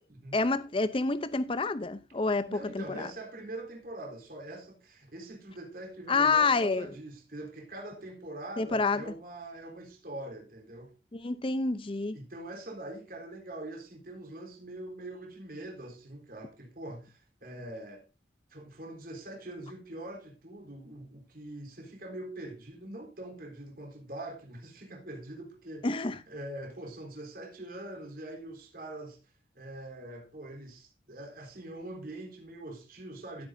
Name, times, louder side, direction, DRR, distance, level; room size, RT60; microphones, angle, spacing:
voice 1, 0.3-3.1 6.1-6.9 8.6-9.0 11.1-12.2 25.8-26.2, left 3 dB, 30° left, 0.6 m, -28 dB
voice 2, 2.5-11.0 12.1-18.1 18.5-29.2 29.5-33.5, right 1 dB, 55° right, 3.8 m, -43 dB
15.5 x 8.6 x 2.6 m
head